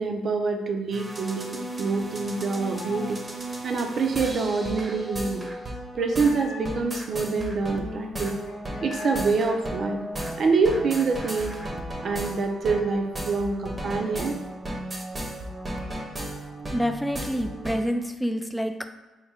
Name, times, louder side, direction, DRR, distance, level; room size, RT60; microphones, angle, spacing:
voice 1, 0.0-3.2 3.6-5.5 5.9-8.3 8.8-10.0 10.4-11.6 12.0-14.4, right 4 dB, 55° right, 4 dB, 0.5 m, -26 dB
sound 1, 0.9-17.8, right 1 dB, 25° right, 0.8 m, -35 dB
sound 2, 1.6-3.2 3.4-7.0 7.4-7.5 7.7-9.3 9.6-11.3 11.7-11.8 12.1-14.5 14.8-14.9 15.2-16.4, left 3 dB, 85° left, 0.6 m, -45 dB
voice 2, 16.7-18.9, equal, 5° left, 7 dB, 0.3 m, -27 dB
4.6 x 2.1 x 3.5 m, 1.1 s
cardioid pair, 90°, 0 cm